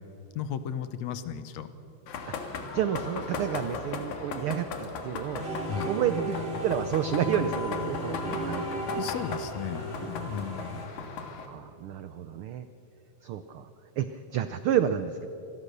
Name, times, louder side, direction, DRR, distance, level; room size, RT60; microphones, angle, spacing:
voice 1, 0.4-1.7 5.7-5.9 8.9-10.9, left 9 dB, 70° left, 12 dB, 2.1 m, -35 dB
sound 1, 2.1-11.5, left 5 dB, 85° left, 3.2 m, -37 dB
voice 2, 2.7-5.4 5.8-8.7 11.5-12.7 13.2-13.7 14.0-15.3, right 9 dB, 90° right, 11 dB, 1.2 m, -30 dB
sound 2, 5.4-10.9, right 1 dB, 20° right, 2.4 m, -35 dB
26.5 x 18.5 x 6.8 m, 3.0 s
omnidirectional pair, 3.3 m